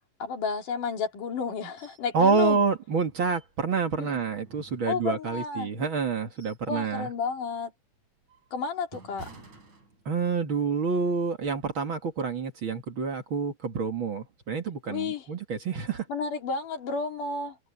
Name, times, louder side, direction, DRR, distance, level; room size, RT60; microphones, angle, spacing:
voice 1, 0.2-2.6 4.0-4.2 4.9-5.7 6.7-7.7 8.5-9.3 14.9-15.3 16.1-17.6, left 5 dB, 85° left, 4.6 m, -31 dB
sound 1, 1.8-2.1 2.4-2.5 3.0-3.8 4.3-5.4 5.9-6.8 7.1-7.4 7.9-10.4 10.8-11.0, right 3 dB, 65° right, 8.1 m, -51 dB
voice 2, 2.1-7.1 10.1-16.0, right 5 dB, 45° right, 2.5 m, -28 dB
omnidirectional pair, 3.6 m